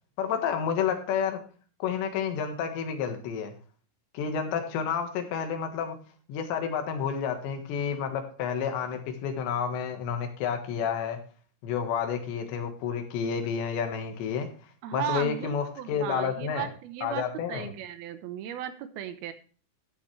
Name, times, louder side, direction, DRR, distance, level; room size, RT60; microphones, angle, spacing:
voice 1, 0.2-1.4 1.8-3.5 4.1-6.0 6.3-11.2 11.6-14.5 14.9-16.7 17.0-17.7, left 7 dB, 85° left, 5 dB, 3.7 m, -30 dB
voice 2, 14.8-19.3, right 10 dB, 75° right, 11 dB, 2.5 m, -36 dB
14.0 x 9.3 x 3.2 m, 0.41 s
omnidirectional pair, 4.9 m